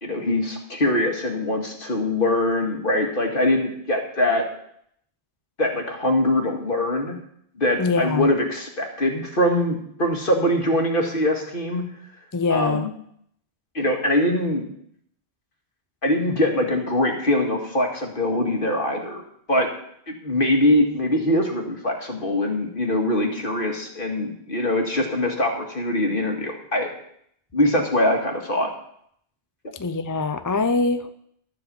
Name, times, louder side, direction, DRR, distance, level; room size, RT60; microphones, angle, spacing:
voice 1, 0.0-4.4 5.6-7.2 7.6-11.8 12.5-12.9 13.7-14.7 16.0-19.2 19.5-19.7 20.1-27.0 27.5-28.7, left 1 dB, 50° left, 2 dB, 2.3 m, -23 dB
voice 2, 7.8-8.3 12.3-12.9 29.8-31.2, left 3 dB, 25° left, 10 dB, 0.5 m, -23 dB
13.0 x 7.7 x 7.0 m, 0.68 s
omnidirectional pair, 1.1 m